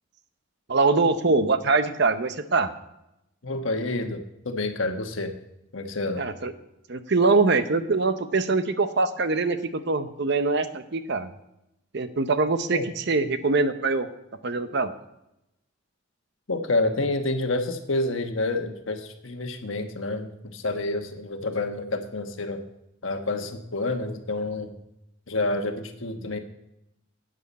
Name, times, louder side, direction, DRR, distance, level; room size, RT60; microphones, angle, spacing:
voice 1, 0.7-2.7 6.2-6.5 6.9-11.3 11.9-12.8 13.1-14.1 14.4-14.9, right 3 dB, 60° right, 10 dB, 0.8 m, -23 dB
voice 2, 3.4-5.3 5.7-6.3 12.7-12.8 16.5-22.6 23.0-24.7 25.3-26.4, left 2 dB, 75° left, 5 dB, 1.2 m, -28 dB
12.5 x 9.0 x 4.1 m, 0.86 s
head